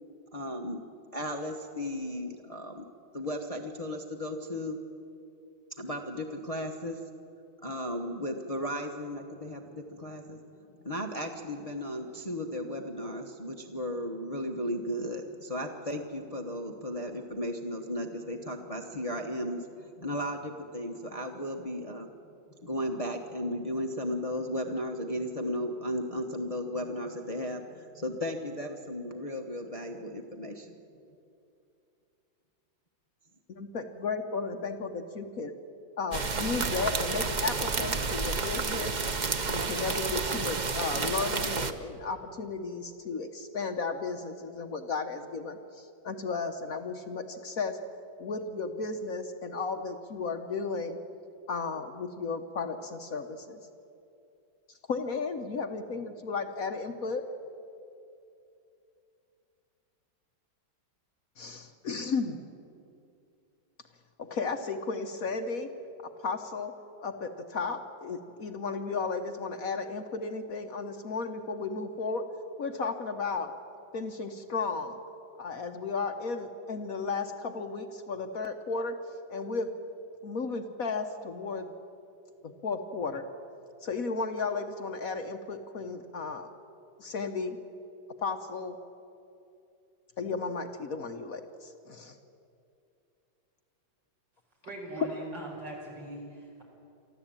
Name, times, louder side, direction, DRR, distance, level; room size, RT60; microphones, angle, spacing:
voice 1, 0.3-0.8 1.1-2.8 3.1-4.8 5.8-7.0 7.6-10.4 10.8-22.1 22.6-30.7, equal, 20° left, 2 dB, 1.1 m, -35 dB
voice 2, 33.5-35.5 36.0-38.9 39.4-47.8 48.2-51.0 51.5-53.6 54.9-57.2 61.4-62.4 64.2-65.7 66.2-66.7 67.0-72.2 72.6-73.5 73.9-75.0 75.4-78.9 79.3-79.7 80.2-81.7 82.4-83.2 83.8-86.5 87.0-87.6 88.2-88.8 90.2-92.2, left 4 dB, 55° left, 6 dB, 1.3 m, -34 dB
sound 1, 36.1-41.7, right 4 dB, 40° right, 0.6 m, -30 dB
voice 3, 94.6-96.6, right 2 dB, 70° right, -2 dB, 5.7 m, -41 dB
24.0 x 14.5 x 8.9 m, 2.6 s
omnidirectional pair, 2.0 m